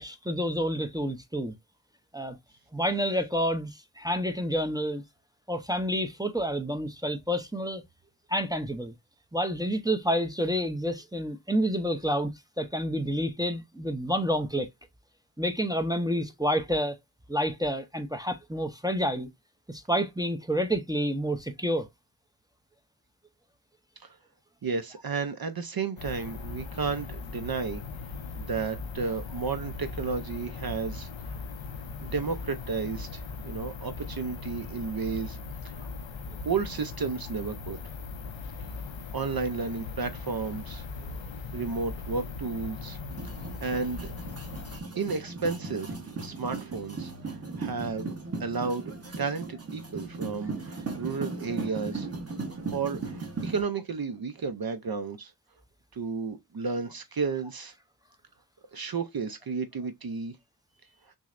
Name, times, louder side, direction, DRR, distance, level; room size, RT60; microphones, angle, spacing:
voice 1, 0.0-1.5 2.1-2.4 2.7-5.0 5.5-7.8 8.3-8.9 9.3-12.3 12.6-14.7 15.4-16.9 17.3-19.3 19.7-21.9, equal, 10° right, 0.6 m, -29 dB
voice 2, 24.6-27.8 28.4-31.1 32.0-35.4 35.6-35.9 36.4-37.8 38.7-38.9 39.1-40.8 41.5-43.0 43.6-44.1 45.0-48.1 48.4-52.1 52.7-55.3 55.9-57.7 58.7-60.3, right 4 dB, 55° right, 0.6 m, -32 dB
sound 1, 26.0-44.8, left 4 dB, 80° left, 0.6 m, -39 dB
sound 2, 43.1-53.6, right 3 dB, 35° right, 1.0 m, -37 dB
6.0 x 2.1 x 2.4 m
wide cardioid pair, 80°, 45 cm